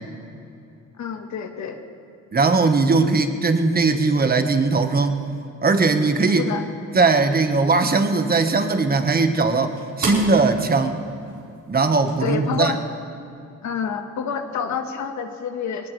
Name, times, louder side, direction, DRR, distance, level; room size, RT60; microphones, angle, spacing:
voice 1, 1.0-1.8 6.3-6.6 12.2-12.8 13.6-15.9, left 7 dB, 65° left, 5 dB, 1.6 m, -28 dB
voice 2, 2.3-5.3 5.6-6.5 6.9-11.0 11.7-12.8, right 3 dB, 30° right, 7 dB, 1.4 m, -19 dB
sound 1, 7.0-12.3, right 3 dB, 70° right, 4.8 m, -36 dB
20.5 x 18.5 x 3.4 m, 2.6 s
cardioid pair, 90°, 30 cm